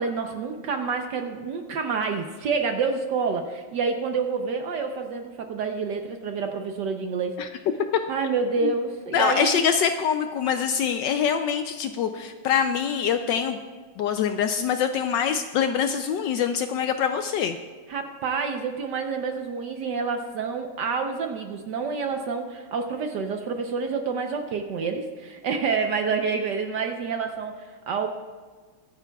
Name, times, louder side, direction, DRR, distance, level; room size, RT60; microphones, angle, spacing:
voice 1, 0.0-7.4 8.1-9.7 17.9-28.1, right 5 dB, 65° right, 5 dB, 1.3 m, -28 dB
voice 2, 9.1-13.6 14.0-17.6, left 7 dB, 75° left, 8 dB, 1.1 m, -24 dB
22.0 x 10.5 x 2.3 m, 1.4 s
omnidirectional pair, 2.2 m